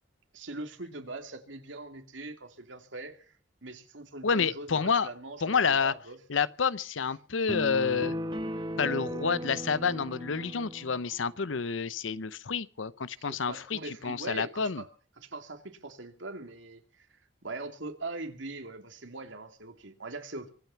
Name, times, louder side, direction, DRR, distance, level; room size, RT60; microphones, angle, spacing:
voice 1, 0.3-3.3 3.6-6.2 13.2-14.9 15.2-17.1 17.4-20.5, right 2 dB, 80° right, 2.6 m, -41 dB
voice 2, 4.2-5.1 5.4-5.9 6.3-8.2 8.8-14.8, left 5 dB, 90° left, 0.8 m, -29 dB
sound 1, 7.5-11.0, equal, 25° right, 1.1 m, -36 dB
24.5 x 9.3 x 5.7 m
head